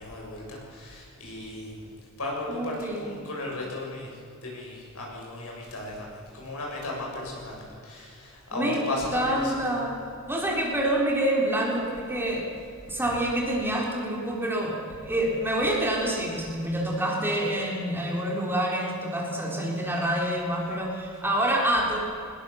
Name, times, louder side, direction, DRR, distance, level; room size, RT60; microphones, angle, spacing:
voice 1, 0.0-9.6, left 2 dB, 75° left, -2 dB, 7.4 m, -36 dB
voice 2, 2.5-3.1 8.5-10.0 10.3-12.5 12.9-22.0, right 1 dB, 10° right, -1 dB, 4.0 m, -27 dB
23.5 x 20.5 x 7.2 m, 2.6 s
head